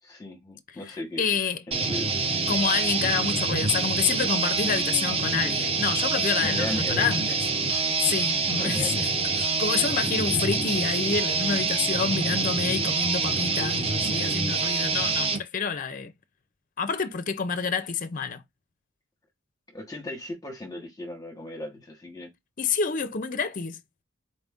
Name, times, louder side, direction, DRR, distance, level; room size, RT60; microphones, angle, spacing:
voice 1, 0.0-1.2 1.7-2.1 6.4-7.1 8.3-8.9 19.7-22.3, left 1 dB, 20° left, 1.1 m, -36 dB
voice 2, 0.9-1.6 2.5-7.4 7.7-16.1 16.8-18.4 22.6-23.8, left 5 dB, 40° left, 0.5 m, -28 dB
sound 1, 1.7-15.4, right 4 dB, 30° right, 0.6 m, -26 dB
4.2 x 2.6 x 3.5 m
head